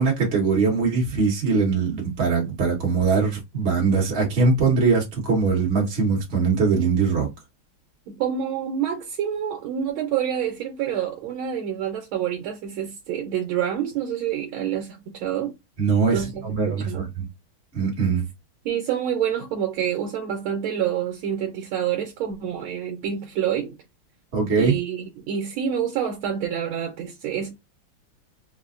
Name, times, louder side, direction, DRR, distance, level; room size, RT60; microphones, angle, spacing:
voice 1, 0.0-7.3 15.8-17.3 17.7-18.2 24.3-24.7, right 4 dB, 35° right, 1.3 m, -22 dB
voice 2, 8.1-15.5 16.1-17.1 18.6-23.7 24.6-27.5, right 9 dB, 85° right, 1.6 m, -27 dB
4.2 x 2.1 x 2.4 m
omnidirectional pair, 2.2 m